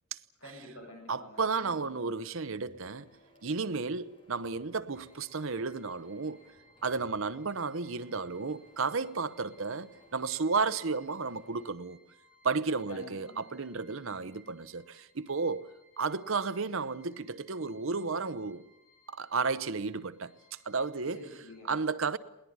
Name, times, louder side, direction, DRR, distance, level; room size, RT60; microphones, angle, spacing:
voice 1, 0.4-2.0 12.9-14.4 21.1-21.7, left 2 dB, 65° left, 7.7 m, -50 dB
voice 2, 1.1-3.1 3.4-6.4 6.8-12.0 12.4-15.7 16.0-18.6 19.1-20.4 20.7-21.2 21.7-22.2, right 4 dB, 65° right, 0.9 m, -33 dB
Printer, 2.6-11.6, equal, 25° left, 5.5 m, -61 dB
sound 1, 4.9-21.6, equal, 40° left, 6.9 m, -64 dB
21.5 x 19.0 x 9.6 m
head